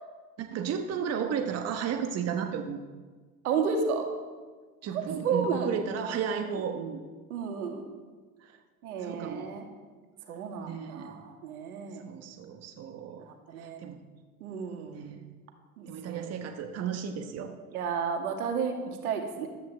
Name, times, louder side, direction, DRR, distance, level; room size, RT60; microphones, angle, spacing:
voice 1, 0.4-2.8 4.8-7.0 8.4-8.6 9.0-9.5 10.6-11.2 12.0-13.2 13.6-14.0 14.8-15.3 15.9-17.5, right 7 dB, 35° right, 5 dB, 1.1 m, -34 dB
voice 2, 3.4-4.1 5.2-5.8 7.3-7.8 8.8-9.6 10.3-12.0 13.2-13.8 14.4-15.0 15.8-16.2 17.7-19.5, right 5 dB, 70° right, 4 dB, 2.0 m, -32 dB
14.0 x 12.5 x 3.5 m, 1.4 s
figure-of-eight pair, 80°, 46 cm